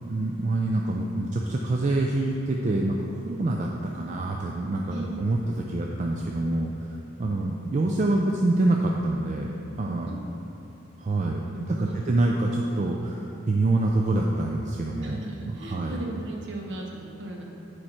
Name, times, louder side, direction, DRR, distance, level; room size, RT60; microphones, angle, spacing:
voice 1, 0.0-3.0 3.2-10.1 11.0-11.4 11.7-15.2 15.5-15.9, right 2 dB, 35° right, 0 dB, 0.3 m, -26 dB
voice 2, 4.9-5.2 10.1-10.2 11.5-12.1 15.0-17.4, right 1 dB, 55° right, -1 dB, 1.0 m, -37 dB
8.8 x 4.7 x 4.3 m, 2.9 s
head